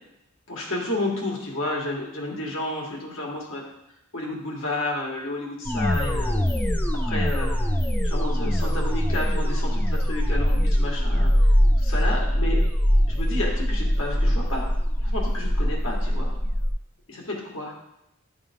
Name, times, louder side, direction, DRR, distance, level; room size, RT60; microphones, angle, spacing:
voice 1, 0.5-3.6 4.1-6.4 7.0-7.5 8.0-11.3 11.8-12.6 13.1-14.7 15.0-16.3 17.1-17.7, left 1 dB, 70° left, -2 dB, 1.7 m, -31 dB
sound 1, 5.7-16.7, equal, 10° left, 0.3 m, -22 dB
9.9 x 3.7 x 3.6 m, 0.85 s
head